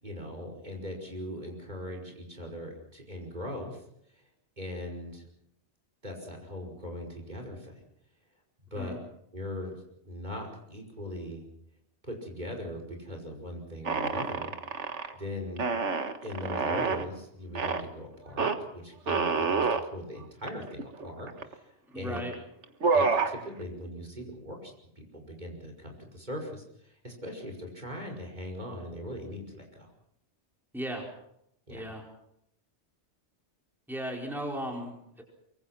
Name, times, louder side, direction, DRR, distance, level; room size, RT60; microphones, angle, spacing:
voice 1, 0.0-3.8 4.6-5.3 6.0-7.8 8.7-9.0 9.3-9.7 10.1-11.4 12.0-14.5 15.1-15.6 16.2-22.2 22.9-24.7 25.0-29.9 31.7-31.8, left 1 dB, 40° right, 2 dB, 5.6 m, -40 dB
sound 1, 13.9-15.1 15.6-17.1 17.6-17.9 18.4-18.6 19.1-19.8 20.5-20.6 20.8-21.5 22.2-22.3 22.6-23.4, right 4 dB, 80° right, 1.9 m, -28 dB
voice 2, 21.9-22.3 30.7-31.1 31.7-32.0 33.9-35.2, equal, ahead, 0 dB, 4.8 m, -36 dB
24.5 x 24.0 x 6.0 m, 0.76 s
omnidirectional pair, 1.2 m